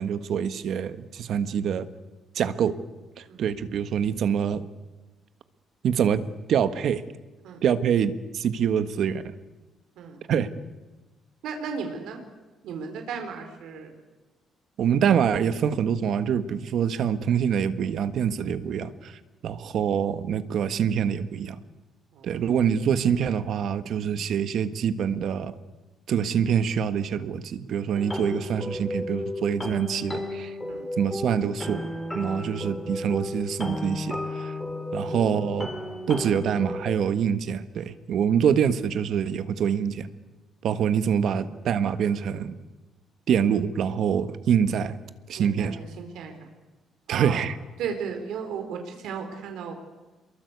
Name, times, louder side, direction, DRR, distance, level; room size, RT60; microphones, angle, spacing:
voice 1, 0.0-1.9 2.3-2.7 3.2-4.6 5.8-6.2 6.5-7.0 7.6-9.2 10.3-10.5 14.8-21.6 22.2-25.5 26.1-30.5 31.0-31.9 32.1-34.5 34.9-35.7 36.1-40.1 40.6-42.5 43.3-45.0 45.3-45.8 47.1-47.6, right 8 dB, 60° right, 11 dB, 1.6 m, -25 dB
voice 2, 11.4-12.2 12.6-13.9 19.6-19.7 22.1-22.3 30.7-30.9 35.0-35.2 41.3-41.5 45.4-46.3 47.1-47.4 47.8-49.7, right 6 dB, 85° right, 5 dB, 4.2 m, -35 dB
sound 1, 27.9-36.9, left 1 dB, 5° left, 3.5 m, -33 dB
28.0 x 22.5 x 8.3 m, 1.2 s
cardioid pair, 155°, 0 cm